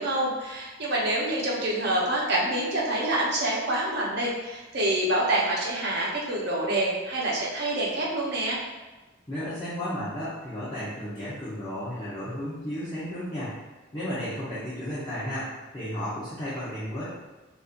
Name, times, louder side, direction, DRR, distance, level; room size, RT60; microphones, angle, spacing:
voice 1, 0.0-8.6, right 1 dB, 55° right, -4 dB, 0.8 m, -27 dB
voice 2, 9.3-13.6 13.9-17.0, equal, 20° left, -13 dB, 0.8 m, -33 dB
4.3 x 2.6 x 2.5 m, 1.2 s
head